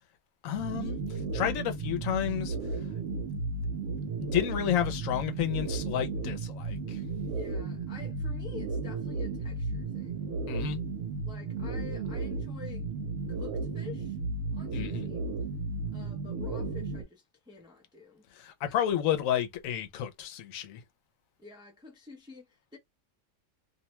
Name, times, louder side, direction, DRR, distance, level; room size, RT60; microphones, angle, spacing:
voice 1, 0.4-2.6 4.2-7.0 10.5-10.8 14.7-15.1 18.3-20.8, left 10 dB, 85° left, 1.0 m, -31 dB
sound 1, 0.5-17.0, right 3 dB, 70° right, 0.9 m, -34 dB
voice 2, 7.3-10.3 11.2-12.9 13.3-14.2 14.5-15.3 15.9-18.2 18.7-19.0 21.4-22.8, left 6 dB, 5° right, 0.3 m, -49 dB
2.5 x 2.1 x 2.9 m
omnidirectional pair, 1.4 m